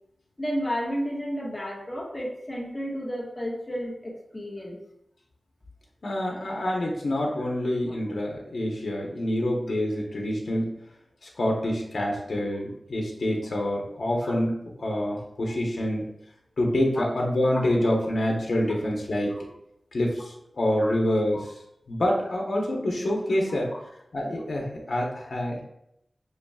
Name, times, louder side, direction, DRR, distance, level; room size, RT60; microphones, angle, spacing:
voice 1, 0.4-4.8 14.2-14.3 15.4-15.5 16.9-17.0 17.8-17.9 19.3-19.4 20.8-21.0 21.3-21.5 23.5-23.8, equal, 20° left, -4 dB, 1.4 m, -32 dB
voice 2, 6.0-10.7 11.2-16.0 16.6-19.3 19.9-21.5 21.9-23.7 24.1-25.6, left 1 dB, 75° left, -1 dB, 1.0 m, -26 dB
6.9 x 3.1 x 2.4 m, 0.78 s
wide cardioid pair, 90°, 0 cm